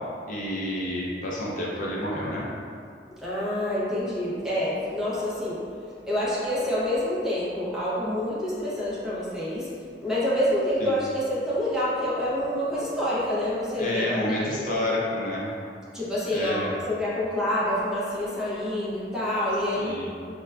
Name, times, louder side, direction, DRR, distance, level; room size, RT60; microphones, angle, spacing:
voice 1, 0.3-2.4 10.8-10.9 13.8-15.5 16.3-16.7 19.8-20.1, left 1 dB, 50° left, -5 dB, 0.4 m, -29 dB
voice 2, 3.2-5.6 6.1-9.7 10.0-14.6 15.9-20.0, left 1 dB, 5° right, -9 dB, 0.7 m, -27 dB
4.6 x 2.2 x 2.2 m, 2.4 s
head